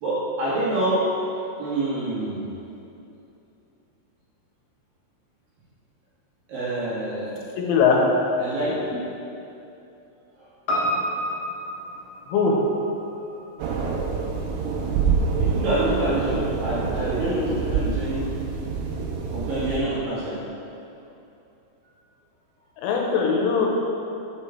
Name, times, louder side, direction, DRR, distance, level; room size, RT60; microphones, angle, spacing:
voice 1, 0.0-1.0 1.6-2.4 6.5-7.4 8.4-9.0 10.4-10.5 13.1-13.3 15.3-18.3 19.3-20.4, right 1 dB, 60° right, -9 dB, 2.9 m, -26 dB
voice 2, 7.6-8.0 12.3-12.6 22.8-23.7, left 6 dB, 90° left, -1 dB, 3.4 m, -20 dB
Piano, 10.7-15.2 15.5-15.6, equal, 65° left, 2.2 m, -31 dB
sound 1, 13.6-19.8, right 5 dB, 90° right, 3.4 m, -26 dB
7.8 x 6.7 x 4.4 m, 2.8 s
omnidirectional pair, 5.6 m